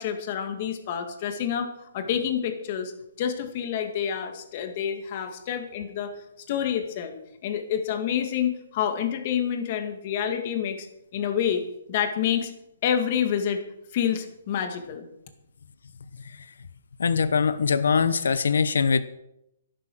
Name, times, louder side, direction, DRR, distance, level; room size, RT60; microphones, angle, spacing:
voice 1, 0.0-2.9 3.2-6.1 6.5-7.2 7.4-10.9 11.1-11.6 11.9-12.5 12.8-13.6 13.9-15.1, left 8 dB, 40° left, 6 dB, 2.0 m, -28 dB
voice 2, 17.0-19.0, left 5 dB, 85° left, 14 dB, 0.9 m, -22 dB
12.0 x 11.5 x 6.2 m, 0.83 s
hypercardioid pair, 160°, 0 cm